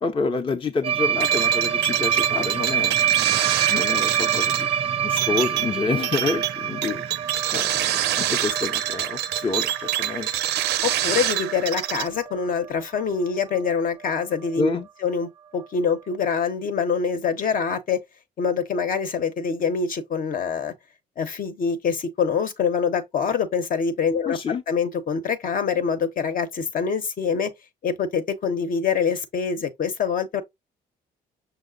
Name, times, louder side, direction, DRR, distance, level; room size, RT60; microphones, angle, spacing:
voice 1, 0.0-3.0 3.7-4.7 5.0-7.0 7.5-10.3 14.6-14.9 24.3-24.6, left 4 dB, 30° left, 0.6 m, -28 dB
sound 1, 0.8-12.7 13.0-13.2 13.5-13.7 14.0-14.1 14.4-14.5 15.6-15.7, right 9 dB, 35° right, 0.4 m, -27 dB
sound 2, 1.2-12.1, right 12 dB, 85° right, 0.5 m, -26 dB
voice 2, 10.8-14.7 15.0-18.0 18.4-20.7 21.2-24.4 24.7-27.5 27.8-30.4, left 6 dB, 55° left, 0.8 m, -25 dB
5.8 x 2.0 x 3.8 m
cardioid pair, 95°, 17 cm